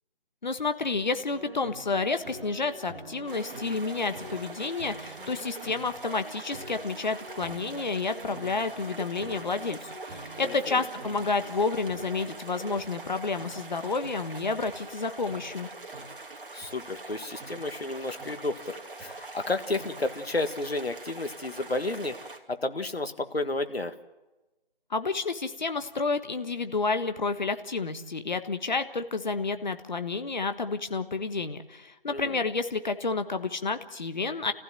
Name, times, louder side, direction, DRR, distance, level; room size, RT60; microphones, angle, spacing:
voice 1, 0.4-15.7 24.9-34.5, left 4 dB, 50° left, 9 dB, 1.4 m, -30 dB
sound 1, 1.3-12.9 13.4-13.5 14.0-14.2 14.7-14.8 15.3-15.4 15.9-16.1 16.6-16.7 17.4-17.5 18.2-18.3 19.0-19.1 19.8-19.9, right 2 dB, 10° right, 2.9 m, -45 dB
sound 2, 3.3-22.4, right 3 dB, 60° right, 2.6 m, -44 dB
voice 2, 10.4-10.8 16.5-22.1 22.5-23.9 32.1-32.4, left 2 dB, 85° left, 8 dB, 1.8 m, -32 dB
28.5 x 15.5 x 7.6 m, 1.1 s
figure-of-eight pair, 165°, 30 cm